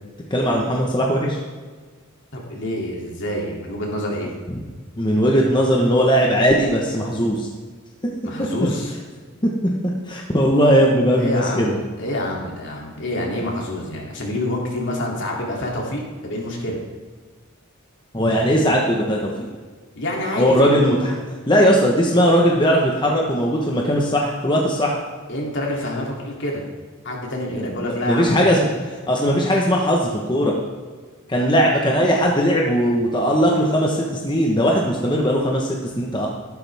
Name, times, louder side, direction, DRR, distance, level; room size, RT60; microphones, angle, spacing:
voice 1, 0.3-1.4 5.0-7.5 8.6-8.7 10.0-11.7 18.1-19.5 20.4-21.1 21.5-25.0 27.5-28.7 29.1-30.6 31.3-36.3, equal, 20° left, -1 dB, 1.2 m, -19 dB
voice 2, 2.3-4.3 8.2-9.0 11.2-16.8 19.9-20.7 25.3-26.6 27.0-28.5, left 1 dB, 60° left, -2 dB, 2.9 m, -27 dB
13.5 x 12.0 x 3.6 m, 1.5 s
head